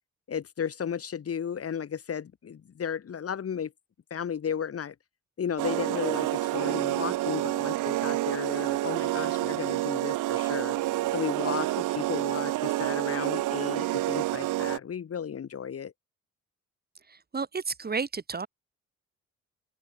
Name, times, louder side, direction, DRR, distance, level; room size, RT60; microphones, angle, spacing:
voice 1, 0.3-3.7 4.1-4.9 5.4-10.8 11.1-15.9, left 7 dB, 50° left, 4.1 m, -34 dB
sound 1, 5.6-14.8, right 16 dB, 90° right, 1.7 m, -28 dB
voice 2, 17.1-18.5, right 5 dB, 30° right, 2.5 m, -32 dB
open air
cardioid pair, 90°, 30 cm